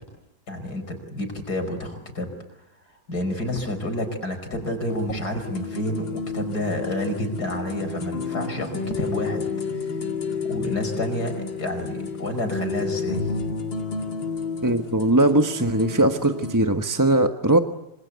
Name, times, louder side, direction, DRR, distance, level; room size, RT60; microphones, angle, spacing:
voice 1, 0.5-2.3 3.1-9.5 10.4-13.6, left 1 dB, 55° left, 6 dB, 5.6 m, -29 dB
sound 1, 4.9-16.6, left 4 dB, 85° left, 3.2 m, -31 dB
voice 2, 14.6-17.6, right 1 dB, 15° right, 6 dB, 1.0 m, -20 dB
26.5 x 26.5 x 8.2 m, 0.84 s
omnidirectional pair, 2.0 m